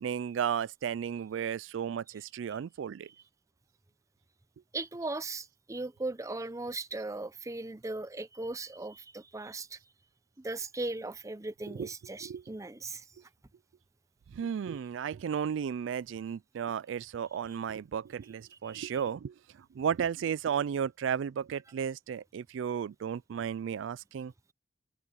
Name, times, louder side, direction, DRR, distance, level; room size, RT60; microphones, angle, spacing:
voice 1, 0.0-3.1 11.7-11.9 12.2-12.4 14.3-24.3, right 8 dB, 80° right, 0.3 m, -34 dB
voice 2, 4.7-9.8 10.4-13.0 18.6-18.9, right 2 dB, 15° right, 0.6 m, -38 dB
head